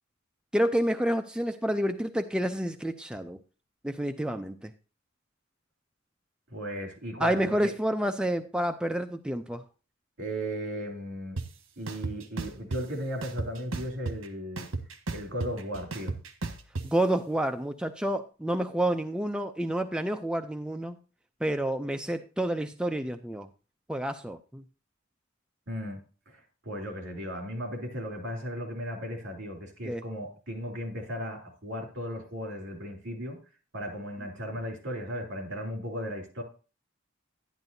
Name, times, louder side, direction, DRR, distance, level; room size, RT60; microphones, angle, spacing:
voice 1, 0.5-3.4 3.8-4.7 7.2-9.6 16.8-21.0 21.4-23.5 23.9-24.6 29.8-30.0, right 1 dB, 5° right, 0.4 m, -29 dB
voice 2, 6.5-7.7 10.2-11.4 11.8-14.7 15.1-16.1 25.7-26.0 26.3-33.4 33.7-36.4, equal, 60° right, 3.2 m, -36 dB
sound 1, 11.4-11.5 11.9-12.8 13.2-14.3 14.6-16.8, right 3 dB, 75° right, 1.2 m, -34 dB
11.5 x 10.5 x 2.7 m
head